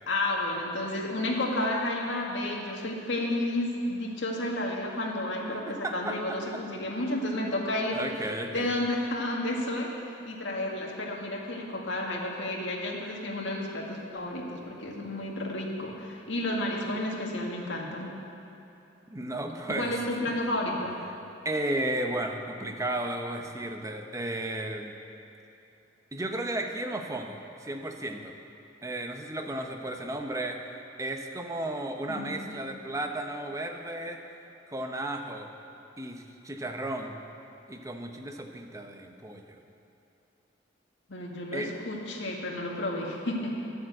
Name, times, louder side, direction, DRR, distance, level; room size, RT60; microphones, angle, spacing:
voice 1, 0.1-9.9 10.2-18.1 19.7-20.9 32.1-32.5 41.1-43.6, left 1 dB, 75° left, -1 dB, 1.9 m, -31 dB
voice 2, 5.7-6.6 7.9-8.7 19.1-19.9 21.4-24.9 26.1-28.3 28.8-30.6 31.0-34.2 34.7-35.5 36.0-37.2 37.7-39.6 41.5-41.7, right 1 dB, 15° right, 4 dB, 0.8 m, -34 dB
11.5 x 7.7 x 7.8 m, 2.9 s
head